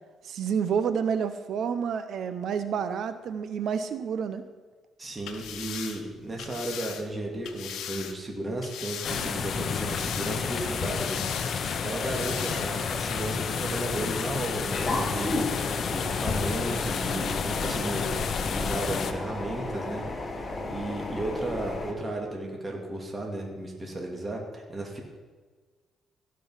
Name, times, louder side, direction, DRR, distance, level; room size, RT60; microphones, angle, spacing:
voice 1, 0.2-4.4, right 7 dB, 70° right, 11 dB, 0.7 m, -29 dB
voice 2, 5.0-15.4 15.9-18.1 18.5-20.0 20.4-25.0, right 1 dB, 25° right, 0 dB, 2.2 m, -34 dB
sound 1, 5.2-8.2 8.6-9.5 9.8-10.6 10.9-11.6 12.0-12.7 13.1-13.3, left 8 dB, 80° left, 1.0 m, -39 dB
sound 2, 9.0-19.1, left 6 dB, 60° left, 0.8 m, -30 dB
sound 3, 14.7-21.9, left 2 dB, 30° left, 1.7 m, -33 dB
16.0 x 5.4 x 5.6 m, 1.4 s
cardioid pair, 90°, 0 cm